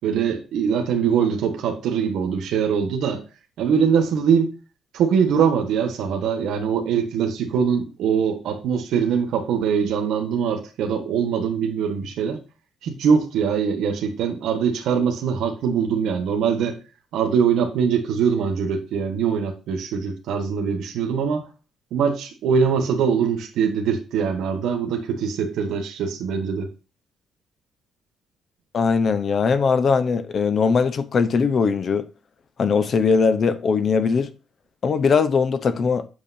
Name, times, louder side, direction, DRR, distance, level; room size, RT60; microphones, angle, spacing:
voice 1, 0.0-3.2 3.6-4.5 4.9-12.4 12.8-16.8 17.1-21.5 21.9-26.7, right 7 dB, 85° right, 1.3 m, -22 dB
voice 2, 28.7-32.1 32.6-34.3 34.8-36.0, left 5 dB, 40° left, 0.8 m, -20 dB
8.2 x 6.8 x 2.7 m
cardioid pair, 145°, 0 cm